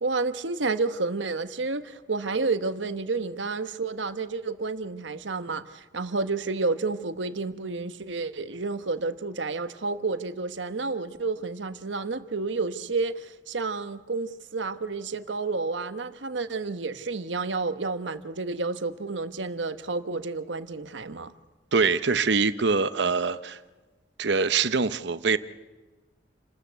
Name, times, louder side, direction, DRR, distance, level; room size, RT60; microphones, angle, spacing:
voice 1, 0.0-21.3, right 3 dB, 90° right, 1.1 m, -30 dB
voice 2, 21.7-23.6 24.2-25.4, right 4 dB, 70° right, 0.9 m, -24 dB
29.0 x 13.5 x 8.1 m
head